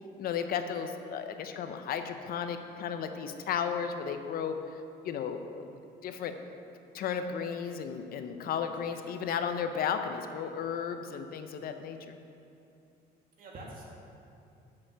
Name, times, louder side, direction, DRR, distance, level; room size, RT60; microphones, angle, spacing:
voice 1, 0.2-4.6 5.0-5.7 6.0-6.3 6.9-12.2, left 7 dB, 60° left, 7 dB, 0.7 m, -34 dB
voice 2, 8.6-9.1 13.4-13.8, right 2 dB, 55° right, -2 dB, 2.0 m, -47 dB
6.6 x 6.1 x 7.4 m, 2.6 s
cardioid pair, 110°, 17 cm